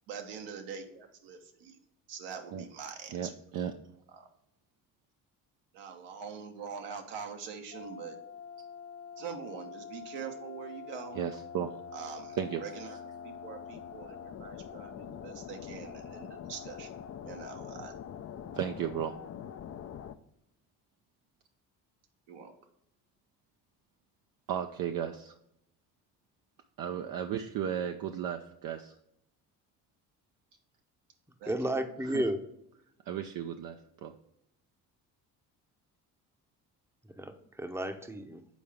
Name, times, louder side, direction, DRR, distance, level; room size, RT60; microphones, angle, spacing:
voice 1, 0.1-1.8 2.1-3.3 4.1-4.3 5.7-8.2 9.2-11.2 11.9-16.9 17.2-17.9 22.3-22.5 31.4-31.9, right 6 dB, 70° right, 4 dB, 1.2 m, -44 dB
voice 2, 3.1-3.7 11.1-11.7 12.4-12.6 18.5-19.2 24.5-25.3 26.8-28.9 32.0-32.3 33.1-34.1, right 9 dB, 50° right, 6 dB, 0.6 m, -35 dB
sound 1, 7.7-20.1, left 8 dB, 35° left, 0.5 m, -45 dB
voice 3, 31.5-32.4 37.2-38.4, right 1 dB, 5° right, 8 dB, 0.8 m, -33 dB
7.1 x 4.6 x 3.4 m, 0.77 s
hypercardioid pair, 60°, 43 cm